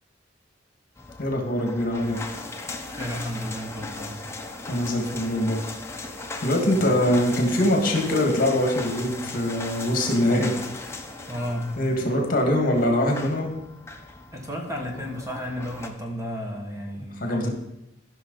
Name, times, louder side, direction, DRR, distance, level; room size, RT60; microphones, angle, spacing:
sound 1, 1.0-15.9, left 3 dB, 15° left, 0.8 m, -38 dB
voice 1, 1.2-2.2 4.7-5.6 6.4-10.5 11.8-13.5 17.2-17.5, left 1 dB, 50° left, 2 dB, 1.8 m, -23 dB
voice 2, 2.9-4.2 6.6-6.9 11.3-11.7 14.3-17.5, equal, 15° right, 1 dB, 1.5 m, -33 dB
14.5 x 6.1 x 4.0 m, 0.88 s
head